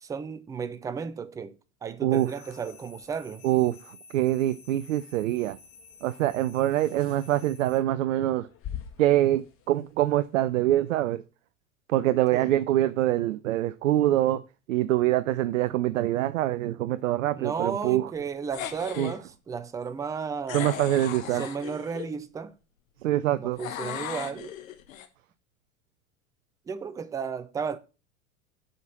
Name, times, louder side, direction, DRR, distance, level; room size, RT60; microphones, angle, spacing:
voice 1, 0.0-3.4 12.3-12.5 17.3-20.7 21.3-22.6 23.4-24.6 26.7-27.8, right 6 dB, 10° right, 0.4 m, -34 dB
sound 1, 2.1-7.8, left 5 dB, 50° left, 2.6 m, -52 dB
sound 2, 2.3-10.6, left 10 dB, 30° left, 1.5 m, -48 dB
voice 2, 3.4-5.6 6.0-8.5 9.0-11.2 11.9-14.4 14.7-18.1 19.0-19.1 20.5-21.4 23.0-23.6, right 14 dB, 60° right, 0.6 m, -25 dB
sound 3, 18.5-19.2 20.5-22.1 23.6-25.1, left 10 dB, 65° left, 1.3 m, -37 dB
8.0 x 5.1 x 5.8 m
figure-of-eight pair, 85°, 43 cm